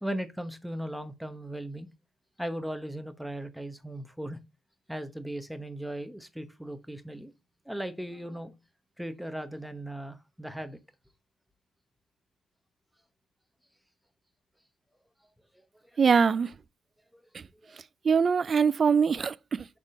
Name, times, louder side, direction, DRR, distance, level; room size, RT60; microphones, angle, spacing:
voice 1, 0.0-1.9 2.4-4.4 4.9-7.3 7.6-8.5 9.0-10.8 15.9-16.0 17.1-17.2 17.6-17.8, right 1 dB, ahead, 1.0 m, -37 dB
voice 2, 16.0-16.5 18.0-19.6, right 6 dB, 40° right, 0.4 m, -23 dB
6.6 x 3.7 x 4.8 m
cardioid pair, 90°, 0 cm